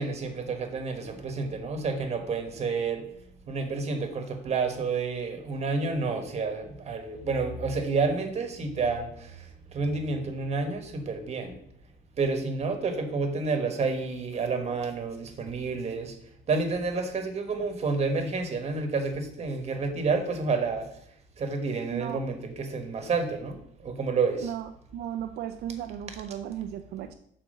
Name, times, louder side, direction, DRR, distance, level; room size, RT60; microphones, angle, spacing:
voice 1, 0.0-3.0 3.5-9.3 9.7-11.5 12.2-16.1 16.5-20.9 21.4-23.6 23.8-24.5, right 4 dB, 40° right, 5 dB, 1.4 m, -29 dB
voice 2, 21.9-22.2 24.4-27.1, right 10 dB, 75° right, 7 dB, 0.5 m, -35 dB
6.2 x 4.2 x 6.4 m, 0.70 s
cardioid pair, 110°, 17 cm